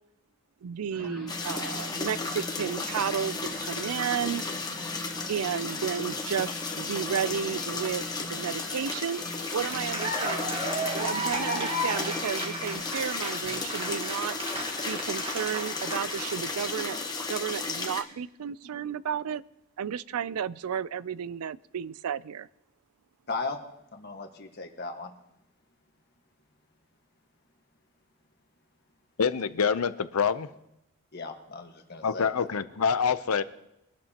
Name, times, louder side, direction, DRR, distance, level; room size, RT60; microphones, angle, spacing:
voice 1, 0.6-4.4 5.3-9.2 9.5-10.4 10.9-14.4 14.9-17.0 17.3-19.4 19.8-22.5, right 8 dB, 90° right, 19 dB, 0.4 m, -32 dB
sound 1, 0.9-12.8, equal, 5° right, 3.7 m, -43 dB
sound 2, 1.3-18.0, left 3 dB, 20° left, 1.2 m, -34 dB
Cheering / Applause, 9.4-17.0, right 1 dB, 25° right, 1.8 m, -34 dB
voice 2, 23.3-23.6 23.9-25.1 31.1-32.5, left 3 dB, 45° left, 4 dB, 1.5 m, -37 dB
voice 3, 29.2-30.5 32.0-33.4, left 6 dB, 85° left, 13 dB, 0.6 m, -26 dB
22.5 x 12.0 x 2.9 m, 0.85 s
head